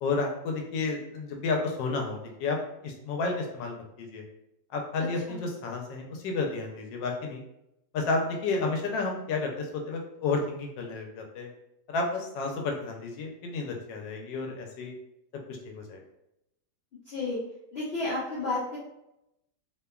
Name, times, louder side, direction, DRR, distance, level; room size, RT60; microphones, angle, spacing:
voice 1, 0.0-2.6 2.8-4.2 4.7-7.4 7.9-11.5 11.9-14.9 15.5-16.0, left 3 dB, 80° left, 2 dB, 1.2 m, -31 dB
voice 2, 17.1-17.4 17.7-18.8, left 2 dB, 55° left, -9 dB, 0.7 m, -31 dB
3.0 x 2.1 x 2.2 m, 0.85 s
omnidirectional pair, 1.9 m